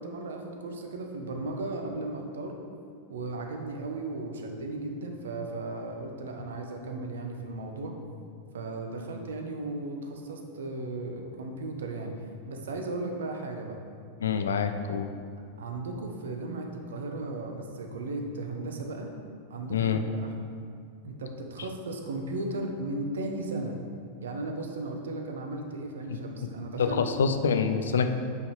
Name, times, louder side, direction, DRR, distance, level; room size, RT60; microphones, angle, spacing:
voice 1, 0.0-2.5 3.1-7.9 8.5-12.1 12.5-13.8 15.6-19.1 19.5-20.3 21.0-23.8 24.2-27.0, right 2 dB, 65° right, 3 dB, 0.8 m, -36 dB
voice 2, 14.2-15.1 19.7-20.0 26.8-28.1, left 6 dB, 65° left, 7 dB, 0.4 m, -26 dB
8.2 x 5.3 x 3.3 m, 2.3 s
figure-of-eight pair, 90°, 0 cm